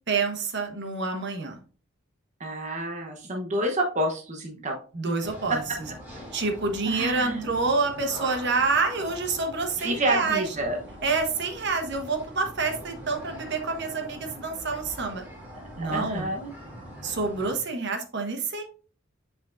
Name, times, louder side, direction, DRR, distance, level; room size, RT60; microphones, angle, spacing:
voice 1, 0.1-1.6 4.9-5.6 6.3-10.4 11.0-15.2 15.8-16.3 17.0-18.6, right 4 dB, 55° right, 4 dB, 1.2 m, -27 dB
voice 2, 2.4-4.8 5.5-5.6 6.9-7.5 9.8-10.8 15.8-16.5, right 1 dB, 35° right, 1 dB, 1.0 m, -28 dB
sound 1, 5.2-17.6, equal, 10° right, 2.6 m, -43 dB
7.9 x 5.2 x 2.6 m, 0.38 s
head